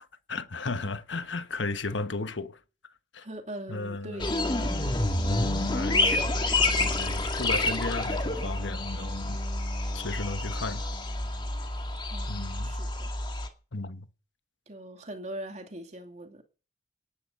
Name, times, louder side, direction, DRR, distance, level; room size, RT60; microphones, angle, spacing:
voice 1, 0.0-2.6 3.1-3.3 3.7-4.2 5.3-6.5 6.8-9.4 9.9-10.9 12.3-12.7 13.7-14.1, left 3 dB, 80° left, 1.2 m, -35 dB
voice 2, 3.2-4.8 12.1-13.1 14.7-16.4, right 1 dB, 40° right, 2.6 m, -42 dB
sound 1, 4.2-13.5, left 2 dB, 25° left, 2.2 m, -28 dB
18.5 x 11.0 x 5.4 m
head